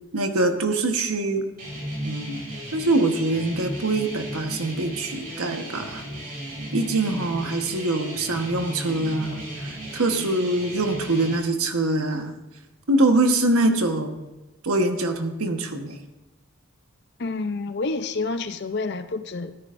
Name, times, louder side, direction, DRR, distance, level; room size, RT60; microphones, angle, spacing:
voice 1, 0.1-1.4 2.0-2.4 2.7-6.0 6.7-12.3 12.9-14.3 14.6-16.0, right 2 dB, 85° right, 1.2 m, -24 dB
sound 1, 1.6-11.4, right 1 dB, 40° right, 4.2 m, -35 dB
voice 2, 17.2-19.6, left 3 dB, 50° left, 0.6 m, -28 dB
14.0 x 13.5 x 2.6 m
head